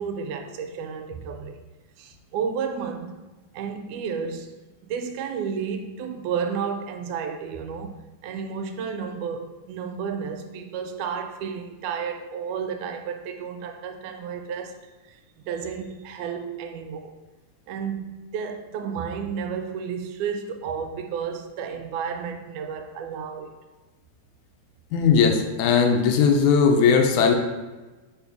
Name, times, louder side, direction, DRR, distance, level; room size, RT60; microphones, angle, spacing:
voice 1, 0.0-1.6 2.0-3.2 3.5-4.5 4.8-14.9 15.4-17.1 17.7-23.5, right 6 dB, 90° right, 2.1 m, -32 dB
voice 2, 24.9-27.3, left 6 dB, 80° left, 2.1 m, -18 dB
5.4 x 4.0 x 4.6 m
omnidirectional pair, 3.4 m